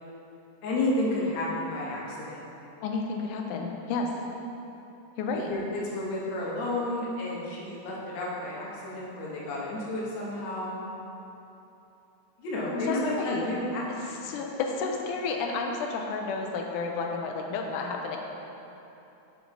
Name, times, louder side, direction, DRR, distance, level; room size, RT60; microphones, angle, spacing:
voice 1, 0.6-2.5 5.5-10.7 12.4-14.2, left 1 dB, 65° left, -5 dB, 2.2 m, -31 dB
voice 2, 2.8-4.1 5.2-5.5 12.7-13.5 14.1-18.2, left 4 dB, 80° left, 2 dB, 2.0 m, -31 dB
7.8 x 5.2 x 3.8 m, 3.0 s
omnidirectional pair, 3.7 m